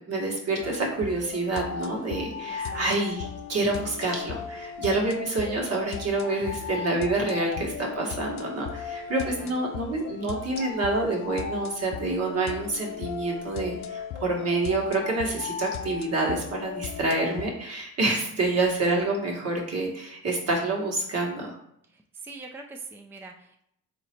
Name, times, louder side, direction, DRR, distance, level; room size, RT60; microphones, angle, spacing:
voice 1, 0.1-21.6, right 2 dB, 55° right, -1 dB, 1.5 m, -27 dB
sound 1, 0.6-17.4, left 7 dB, 65° left, 0.5 m, -37 dB
voice 2, 2.5-2.9 6.3-6.7 8.8-8.9 9.3-9.5 21.9-23.6, right 3 dB, 5° right, 2 dB, 0.4 m, -44 dB
4.1 x 2.9 x 4.4 m, 0.73 s
cardioid pair, 90°, 30 cm